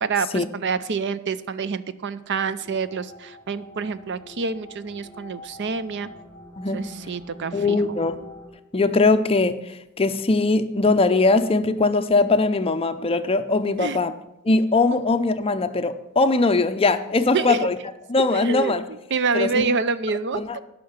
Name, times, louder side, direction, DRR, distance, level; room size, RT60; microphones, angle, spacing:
voice 1, 0.0-6.1 6.7-7.8 13.8-14.0 17.3-17.7 18.3-18.7 19.1-20.4, right 4 dB, 55° right, 0.5 m, -27 dB
sound 1, 2.6-8.5, left 1 dB, 10° right, 5.2 m, -44 dB
voice 2, 6.6-6.9 7.5-8.2 8.7-14.2 14.4-17.8 18.1-18.8 19.3-19.6 20.3-20.6, left 3 dB, 25° left, 0.5 m, -21 dB
10.5 x 5.8 x 8.0 m
head